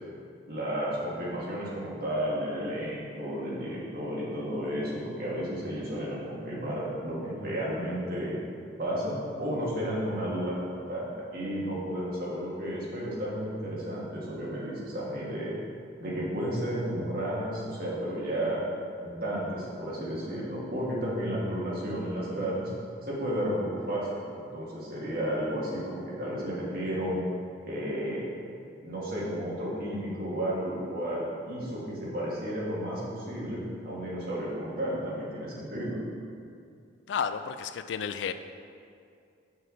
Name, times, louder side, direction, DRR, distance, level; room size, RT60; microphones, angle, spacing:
voice 1, 0.5-8.4 8.8-15.5 16.0-18.6 19.0-22.7 23.0-27.2 27.6-28.2 28.8-36.0, equal, 50° right, -6 dB, 1.8 m, -32 dB
voice 2, 37.1-38.3, left 7 dB, 65° left, 10 dB, 0.3 m, -32 dB
6.6 x 6.4 x 3.9 m, 2.4 s
head